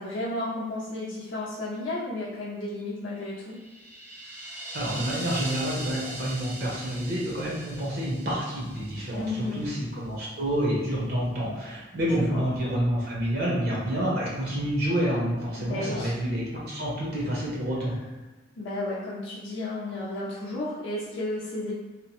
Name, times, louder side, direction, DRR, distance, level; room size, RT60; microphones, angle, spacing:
voice 1, 0.0-3.6 9.1-9.6 12.1-12.4 15.6-16.1 18.6-21.7, left 2 dB, 85° left, -7 dB, 0.5 m, -33 dB
sound 1, 3.4-9.6, right 1 dB, 10° right, 0.4 m, -40 dB
voice 2, 4.7-18.0, equal, 55° right, -5 dB, 0.7 m, -28 dB
2.8 x 2.0 x 2.9 m, 1.1 s
head